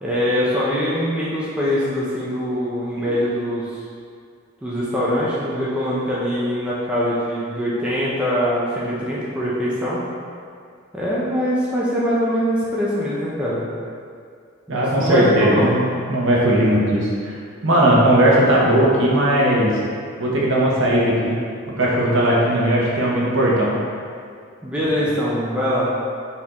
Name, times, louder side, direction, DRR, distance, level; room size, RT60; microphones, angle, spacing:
voice 1, 0.0-3.8 4.6-10.0 10.9-13.7 14.7-15.8 24.6-25.9, equal, 5° right, -8 dB, 0.5 m, -23 dB
voice 2, 14.7-15.8 16.1-17.4 17.6-19.8 20.2-21.4 21.8-23.8, right 1 dB, 60° right, -5 dB, 0.8 m, -17 dB
4.2 x 3.7 x 2.9 m, 2.2 s
head